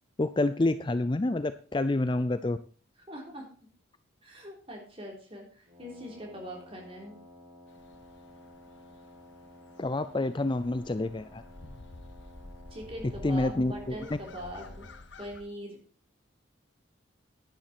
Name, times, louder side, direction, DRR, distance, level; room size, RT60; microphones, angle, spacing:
voice 1, 0.2-2.6 9.8-11.4 13.2-13.9, left 2 dB, 25° left, 12 dB, 0.4 m, -28 dB
voice 2, 3.1-3.4 4.2-7.2 12.7-14.9 15.2-15.8, equal, 30° right, 0 dB, 3.6 m, -42 dB
Wind instrument woodwind instrument, 5.7-15.0, left 1 dB, 45° right, 4.4 m, -53 dB
sound 1, 7.7-15.4, left 2 dB, 65° left, 1.2 m, -50 dB
10.5 x 10.5 x 4.3 m, 0.40 s
head